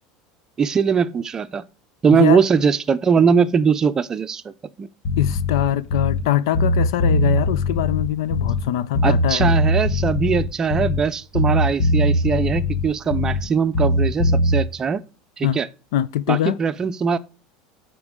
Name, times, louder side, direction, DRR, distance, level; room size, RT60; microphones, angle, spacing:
voice 1, 0.6-1.6 2.0-4.5 4.8-4.9 9.0-15.0 15.4-15.7 16.3-17.2, right 6 dB, 25° right, 0.5 m, -20 dB
voice 2, 2.1-2.4 5.2-9.5 15.4-15.6 15.9-16.6, left 12 dB, 90° left, 0.4 m, -22 dB
Bass guitar, 5.0-6.3 6.5-8.7 8.9-11.1 11.3-13.5 13.7-14.6, left 1 dB, 60° left, 1.5 m, -20 dB
10.5 x 4.4 x 3.7 m
supercardioid pair, 130°, 2 cm